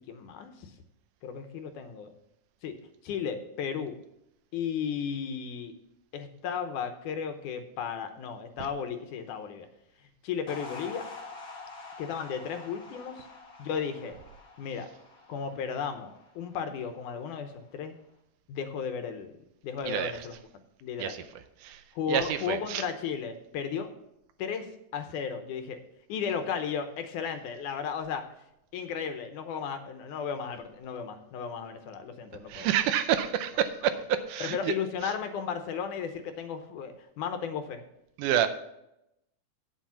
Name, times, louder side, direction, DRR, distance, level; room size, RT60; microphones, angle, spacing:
voice 1, 0.1-0.7 1.2-2.1 2.6-2.8 3.0-3.9 4.5-5.7 6.1-9.7 10.2-11.1 12.0-13.3 13.6-14.2 14.6-14.9 15.3-18.0 18.5-19.4 19.6-20.3 20.8-21.2 22.0-23.9 24.4-25.8 26.1-28.3 28.7-32.7 34.4-37.8, left 7 dB, 75° left, 8 dB, 2.2 m, -34 dB
sound 1, 10.5-17.0, left 3 dB, 55° left, 1.0 m, -46 dB
voice 2, 22.1-22.8 32.5-34.7 38.2-38.5, right 10 dB, 80° right, 10 dB, 2.1 m, -28 dB
8.7 x 7.4 x 5.8 m, 0.84 s
omnidirectional pair, 3.8 m